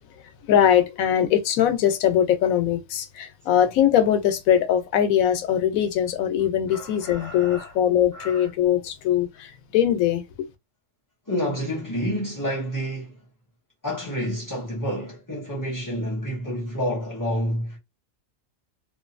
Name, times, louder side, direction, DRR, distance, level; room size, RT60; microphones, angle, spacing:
voice 1, 0.5-10.5, left 10 dB, 90° left, 1.0 m, -21 dB
voice 2, 6.7-7.8 8.1-8.5 11.3-13.2 13.8-17.8, equal, 35° left, 0.3 m, -29 dB
2.6 x 2.5 x 2.5 m
omnidirectional pair, 1.4 m